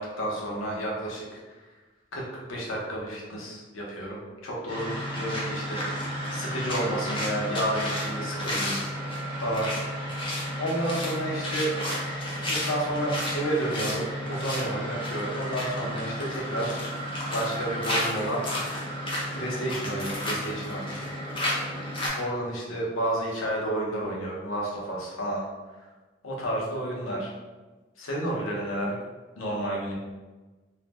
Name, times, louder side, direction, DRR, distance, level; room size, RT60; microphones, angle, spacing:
voice 1, 0.0-1.4 2.1-8.7 9.4-9.7 10.6-11.7 12.3-16.9 17.3-18.4 19.3-20.9 22.2-25.4 26.2-27.3 28.0-29.0 29.4-29.9, right 1 dB, 85° left, -3 dB, 0.8 m, -31 dB
sound 1, 4.7-22.1, equal, 25° left, 0.5 m, -32 dB
2.6 x 2.1 x 3.3 m, 1.2 s
head